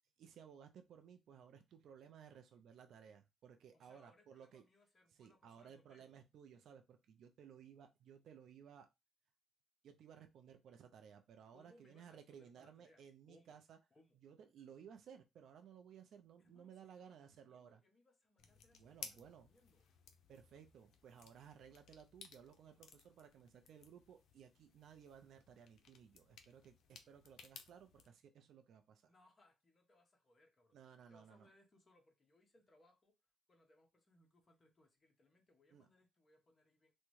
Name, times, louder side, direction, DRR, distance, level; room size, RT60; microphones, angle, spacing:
voice 1, 0.2-4.6 5.1-8.9 9.8-13.8 14.2-17.8 18.7-19.5 20.3-29.1 30.7-31.5 35.7-35.9, right 8 dB, 70° right, 0.4 m, -59 dB
voice 2, 3.7-6.1 11.5-13.6 13.9-14.2 16.4-19.9 29.1-30.8 31.1-33.2 33.5-36.9, left 1 dB, 30° left, 1.1 m, -71 dB
sound 1, 18.4-28.1, left 7 dB, 75° left, 0.5 m, -59 dB
3.5 x 2.1 x 3.1 m
cardioid pair, 90°, 0 cm